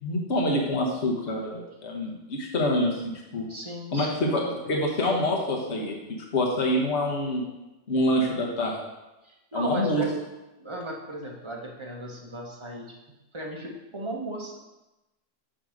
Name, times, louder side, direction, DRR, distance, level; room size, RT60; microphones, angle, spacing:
voice 1, 0.0-3.0 3.3-3.5 3.9-6.0 6.3-7.4 7.9-8.8 9.5-10.1, left 1 dB, 60° left, -1 dB, 1.5 m, -26 dB
voice 2, 3.5-4.3 9.2-10.2 10.6-12.9 13.3-14.6, right 1 dB, 25° right, -1 dB, 1.2 m, -36 dB
8.9 x 3.3 x 6.4 m, 1.0 s
omnidirectional pair, 1.3 m